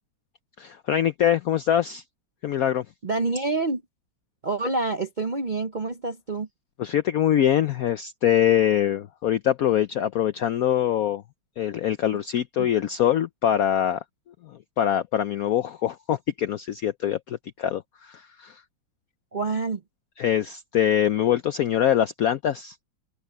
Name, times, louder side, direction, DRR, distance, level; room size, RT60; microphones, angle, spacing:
voice 1, 0.6-2.0 2.4-2.9 6.8-11.2 11.6-14.0 14.4-18.6 20.2-22.7, left 10 dB, 75° left, 0.8 m, -24 dB
voice 2, 3.0-3.8 4.4-6.5 12.6-12.7 19.3-19.8, right 3 dB, 70° right, 0.4 m, -27 dB
open air
omnidirectional pair, 2.2 m